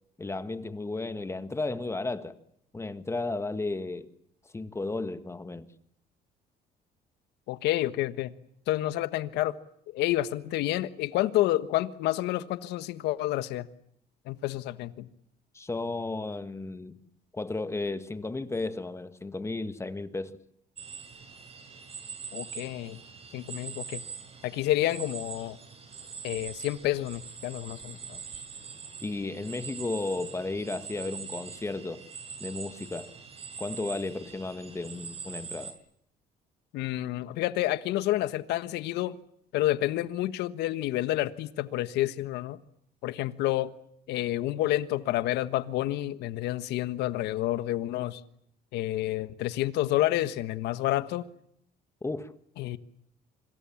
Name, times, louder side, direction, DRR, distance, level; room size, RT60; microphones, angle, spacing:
voice 1, 0.2-2.4 2.7-4.1 4.5-5.7 15.5-16.9 17.3-20.4 29.0-32.0 32.4-33.1 33.6-35.8 52.0-52.3, left 3 dB, 15° left, 1.7 m, -34 dB
voice 2, 7.5-8.3 8.7-9.6 9.9-13.7 14.3-15.1 22.3-23.0 23.3-24.0 24.4-25.6 26.2-28.2 36.7-39.1 39.5-42.6 43.0-43.7 44.1-48.2 48.7-51.3 52.6-52.8, left 15 dB, 85° left, 1.4 m, -29 dB
sound 1, 20.8-35.7, right 6 dB, 35° right, 6.3 m, -43 dB
26.5 x 26.0 x 7.3 m
cardioid pair, 110°, 17 cm